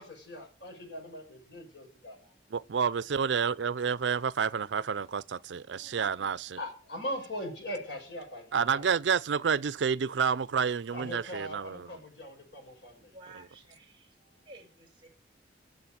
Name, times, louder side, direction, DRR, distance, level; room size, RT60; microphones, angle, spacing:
voice 1, 0.0-2.3 5.9-6.0 6.6-8.8 10.9-13.1, equal, 75° left, 5.8 m, -41 dB
voice 2, 2.5-6.6 8.5-12.0 13.3-13.5, right 6 dB, 80° right, 0.5 m, -29 dB
voice 3, 3.3-3.8 5.8-6.3 13.1-14.1 14.4-15.1, right 2 dB, 30° right, 3.4 m, -54 dB
10.0 x 7.0 x 8.6 m
head